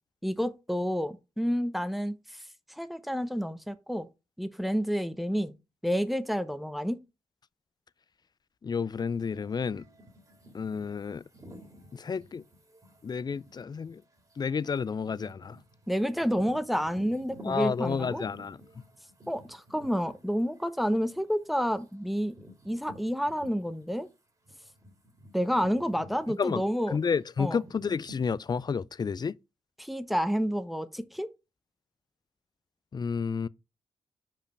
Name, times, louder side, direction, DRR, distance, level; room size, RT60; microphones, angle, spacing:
voice 1, 0.2-2.2 2.7-4.1 4.4-5.5 5.8-7.0 15.9-18.3 19.3-22.3 22.6-24.1 25.3-27.0 27.4-27.6 29.8-31.3, equal, ahead, 0.8 m, -29 dB
voice 2, 8.6-9.8 10.5-11.2 11.9-12.4 13.0-14.0 14.4-15.6 17.4-18.6 26.4-26.6 26.9-29.3 32.9-33.5, left 5 dB, 35° left, 0.4 m, -30 dB
sound 1, 8.9-24.1 24.4-28.3, equal, 30° right, 2.3 m, -53 dB
5.4 x 4.9 x 5.8 m
cardioid pair, 65°, 13 cm